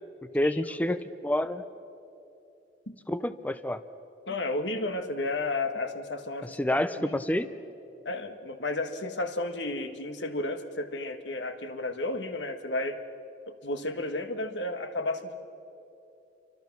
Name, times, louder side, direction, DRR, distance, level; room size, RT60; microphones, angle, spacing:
voice 1, 0.3-1.6 3.1-3.8 6.4-7.5, left 1 dB, 10° left, 12 dB, 0.5 m, -28 dB
voice 2, 4.3-6.6 6.9-7.2 8.0-13.0 13.5-15.3, left 2 dB, 80° left, 7 dB, 1.6 m, -32 dB
29.0 x 24.5 x 6.1 m, 2.8 s
head